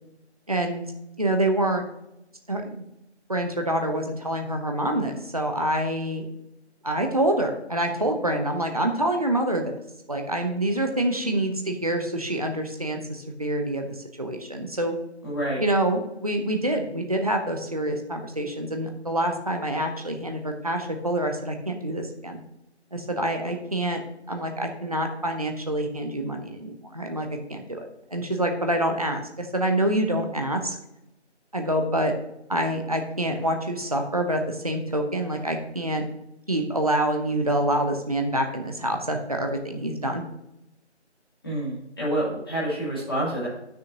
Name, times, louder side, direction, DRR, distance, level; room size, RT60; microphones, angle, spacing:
voice 1, 0.5-0.8 1.2-1.8 2.5-2.7 3.3-6.2 6.8-9.7 10.1-13.9 14.2-14.9 15.6-22.4 22.9-24.0 24.3-30.8 31.5-32.1 32.5-36.0 36.5-40.2, right 1 dB, 35° right, 4 dB, 0.8 m, -26 dB
voice 2, 15.2-15.6 41.4-43.5, right 1 dB, 20° left, -8 dB, 2.3 m, -28 dB
10.5 x 6.4 x 2.8 m, 0.86 s
figure-of-eight pair, 170°, 34 cm